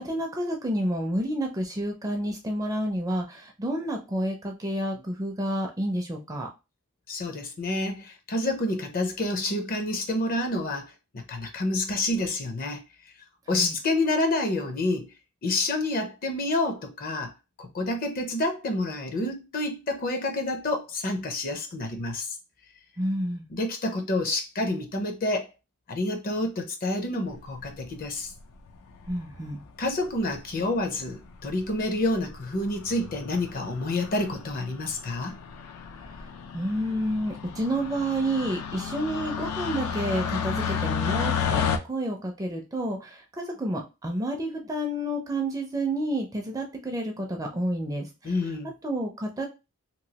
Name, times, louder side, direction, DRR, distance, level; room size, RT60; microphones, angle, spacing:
voice 1, 0.0-6.5 13.5-13.8 23.0-23.5 29.1-29.6 36.5-48.3 48.8-49.5, right 1 dB, 15° right, 0.4 m, -30 dB
voice 2, 7.1-12.8 13.5-15.1 15.4-17.3 17.6-22.3 23.5-25.5 25.9-28.3 29.8-35.4 48.2-48.7, left 2 dB, 40° left, 0.5 m, -28 dB
sound 1, 27.6-28.1 29.0-29.5 30.3-30.4 30.6-30.7 31.0-31.1 31.4-31.7 32.1-32.4 32.6-41.8, left 7 dB, 85° left, 0.5 m, -32 dB
3.0 x 2.3 x 2.8 m
head